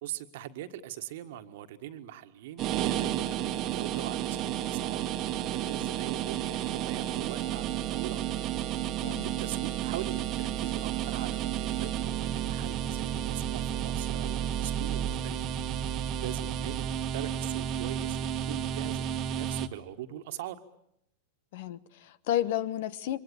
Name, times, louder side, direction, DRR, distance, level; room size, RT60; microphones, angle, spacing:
voice 1, 0.0-5.0 5.5-8.4 9.2-15.4 16.2-20.6, right 12 dB, 55° right, 1.8 m, -41 dB
sound 1, 2.6-19.7, right 10 dB, 35° right, 1.5 m, -32 dB
voice 2, 21.5-23.2, left 12 dB, 55° left, 1.1 m, -31 dB
27.5 x 24.5 x 7.2 m
figure-of-eight pair, 90°, 0 cm